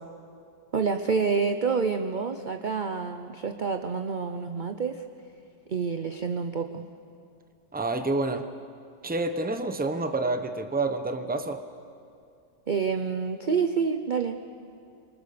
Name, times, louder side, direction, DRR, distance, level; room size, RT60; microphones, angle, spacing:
voice 1, 0.7-5.0 5.7-6.8 12.7-14.4, right 5 dB, 45° right, 6 dB, 0.6 m, -28 dB
voice 2, 7.7-8.5 9.0-11.6, right 2 dB, 5° right, 8 dB, 0.8 m, -28 dB
26.5 x 24.5 x 6.8 m, 2.5 s
omnidirectional pair, 1.9 m